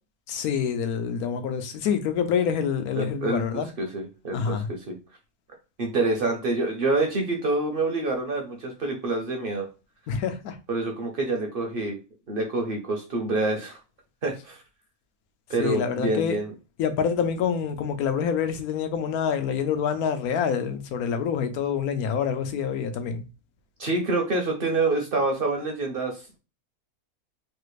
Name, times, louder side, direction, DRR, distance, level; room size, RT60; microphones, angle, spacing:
voice 1, 0.3-3.7 4.3-4.7 10.1-10.6 15.6-16.4 16.8-23.2, left 7 dB, 80° left, 1.1 m, -26 dB
voice 2, 2.9-5.0 5.8-9.7 10.7-12.0 12.3-13.8 14.2-14.6 15.5-16.5 23.8-26.4, right 2 dB, 50° right, 0.8 m, -27 dB
3.3 x 2.4 x 3.1 m
omnidirectional pair, 1.5 m